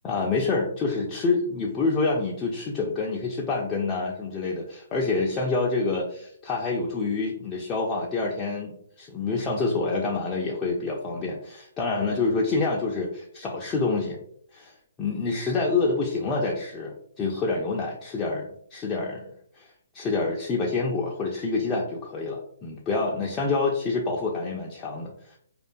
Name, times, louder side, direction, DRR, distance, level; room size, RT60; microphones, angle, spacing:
voice 1, 0.0-14.2 14.5-14.7 15.0-25.4, left 3 dB, 20° left, -3 dB, 0.3 m, -27 dB
2.4 x 2.2 x 2.4 m, 0.66 s
figure-of-eight pair, 135°, 0 cm